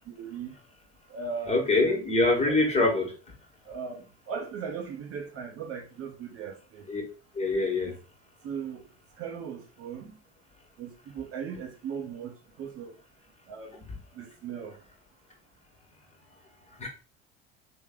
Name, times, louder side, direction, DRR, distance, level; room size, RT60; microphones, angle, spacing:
voice 1, 0.1-0.6 1.1-2.0 2.5-2.8 3.7-6.8 7.9-8.0 8.4-8.9 9.2-10.2 10.8-13.0 13.5-13.8 14.1-14.8, right 6 dB, 40° right, 0.7 m, -38 dB
voice 2, 1.5-3.1 6.9-7.0 7.3-7.9 16.8-16.9, left 2 dB, 20° left, 1.3 m, -24 dB
3.2 x 2.2 x 3.5 m
hypercardioid pair, 70°, 35 cm